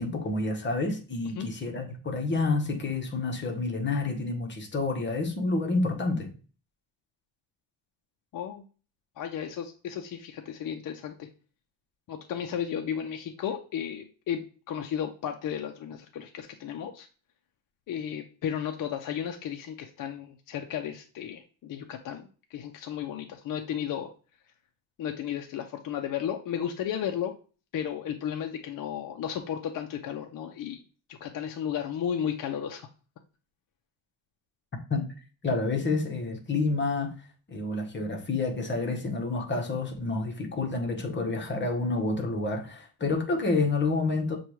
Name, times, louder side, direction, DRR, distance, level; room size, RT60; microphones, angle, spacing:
voice 1, 0.0-6.3 34.9-35.1 35.4-37.1 37.5-44.4, left 3 dB, 25° left, 0.9 m, -29 dB
voice 2, 8.3-8.6 9.2-11.3 12.1-17.1 17.9-24.1 25.0-27.3 27.7-30.8 31.1-32.9, left 9 dB, 50° left, 0.5 m, -34 dB
6.7 x 2.3 x 3.0 m
cardioid pair, 130°, 43 cm